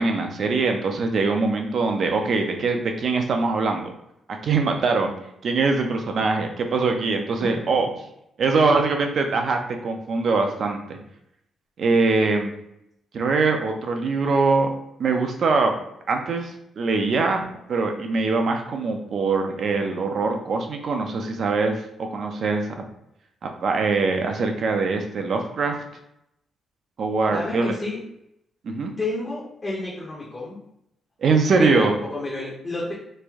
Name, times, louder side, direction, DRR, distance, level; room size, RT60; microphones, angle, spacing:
voice 1, 0.0-3.9 4.4-5.1 5.4-7.9 8.4-11.0 11.8-12.5 13.1-14.7 15.0-15.7 16.1-17.4 17.7-22.8 23.4-25.7 27.0-27.7 28.6-28.9 31.2-32.0, right 4 dB, 45° right, 4 dB, 0.5 m, -22 dB
voice 2, 27.3-28.0 29.0-30.6 31.6-32.9, left 2 dB, 20° left, -5 dB, 0.7 m, -30 dB
3.1 x 2.6 x 3.5 m, 0.79 s
cardioid pair, 180°, 0 cm